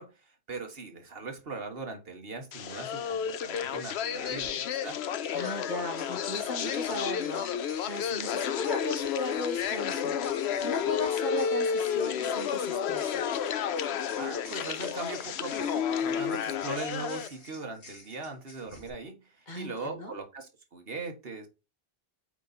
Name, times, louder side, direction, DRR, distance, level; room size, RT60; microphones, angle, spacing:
voice 1, 0.0-5.0 14.1-21.5, right 3 dB, 65° right, 1.6 m, -40 dB
sound 1, 2.5-17.3, left 8 dB, 90° left, 0.9 m, -31 dB
sound 2, 4.4-4.5 5.2-18.9, left 2 dB, 65° left, 2.3 m, -52 dB
voice 2, 5.3-13.3 19.5-20.1, left 2 dB, 45° left, 1.7 m, -37 dB
8.3 x 4.0 x 4.1 m
omnidirectional pair, 1.1 m